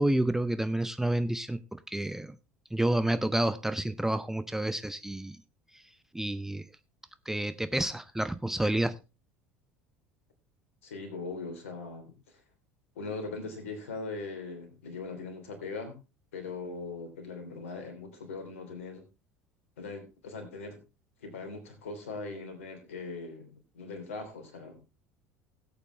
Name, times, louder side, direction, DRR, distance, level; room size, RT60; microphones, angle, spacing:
voice 1, 0.0-2.4 2.7-5.4 6.1-6.6 7.3-9.0, right 1 dB, 5° right, 13 dB, 0.6 m, -29 dB
voice 2, 10.8-12.4 12.9-16.0 16.3-19.0 19.8-20.8 21.2-24.8, left 3 dB, 70° left, 6 dB, 3.2 m, -40 dB
17.0 x 8.4 x 3.3 m, 0.28 s
figure-of-eight pair, 65°, 7 cm